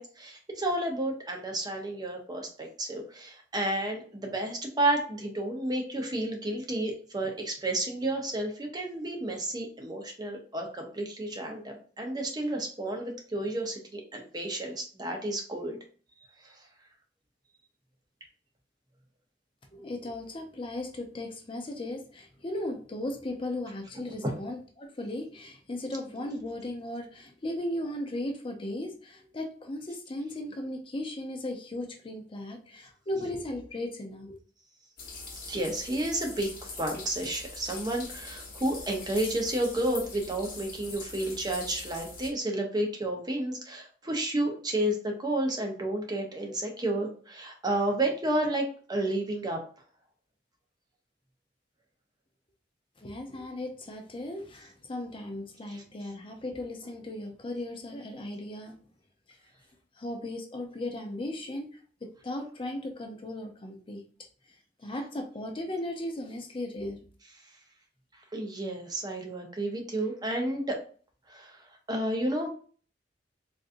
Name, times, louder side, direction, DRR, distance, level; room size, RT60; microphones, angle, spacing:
voice 1, 0.0-15.8 16.4-16.6 35.5-36.5 36.8-49.6 55.7-55.8 68.3-70.8 71.3-71.6 71.9-72.5, right 1 dB, 25° right, 2 dB, 0.7 m, -31 dB
voice 2, 19.7-34.3 53.0-58.8 59.3-59.4 60.0-64.0 64.8-67.0, left 1 dB, 30° left, 3 dB, 0.5 m, -36 dB
sound 1, 35.0-42.3, left 3 dB, 50° left, 1.1 m, -43 dB
3.7 x 2.5 x 2.5 m, 0.42 s
head